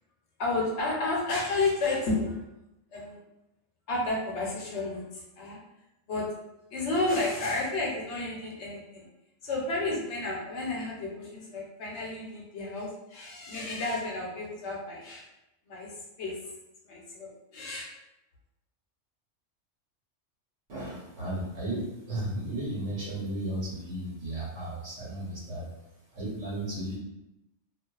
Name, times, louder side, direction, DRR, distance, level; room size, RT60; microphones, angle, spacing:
voice 1, 0.4-2.4 2.9-3.2 3.9-5.6 6.1-6.3 6.7-9.1 9.4-15.3 15.7-15.9 16.2-16.4 16.8-17.9, left 2 dB, 70° left, -3 dB, 0.9 m, -31 dB
voice 2, 20.7-25.7 26.1-27.0, right 1 dB, 85° right, -7 dB, 1.3 m, -34 dB
2.5 x 2.2 x 2.3 m, 0.91 s
omnidirectional pair, 1.2 m